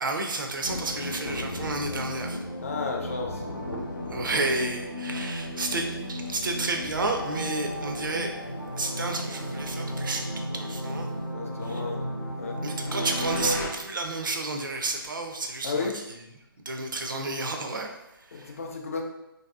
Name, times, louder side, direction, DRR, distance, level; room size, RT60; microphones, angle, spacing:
voice 1, 0.0-2.4 4.1-8.3 8.8-11.1 11.6-11.8 12.6-15.9 16.7-18.6, right 2 dB, 55° right, 3 dB, 0.5 m, -31 dB
Thunder, 0.6-12.6 12.9-13.0, left 1 dB, 90° left, 0.5 m, -43 dB
sound 1, 0.6-13.7, equal, 55° left, 0.8 m, -34 dB
voice 2, 2.6-3.4 11.3-12.6 15.6-15.9 18.3-19.0, left 4 dB, 35° left, 1 dB, 0.4 m, -33 dB
3.2 x 2.7 x 2.4 m, 0.90 s
figure-of-eight pair, 140°, 13 cm